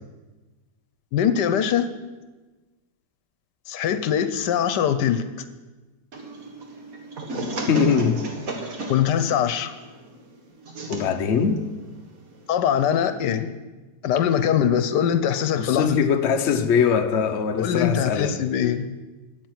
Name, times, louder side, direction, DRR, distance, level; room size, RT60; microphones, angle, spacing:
voice 1, 1.1-1.9 3.7-5.2 8.9-9.7 12.5-13.5 14.0-16.0 17.6-18.9, left 9 dB, 80° left, 1.3 m, -22 dB
sound 1, 6.1-12.8, right 1 dB, 55° right, 2.0 m, -35 dB
voice 2, 7.7-8.2 10.9-11.6 15.6-18.4, left 6 dB, 50° left, 1.0 m, -22 dB
9.1 x 8.3 x 9.4 m
omnidirectional pair, 1.8 m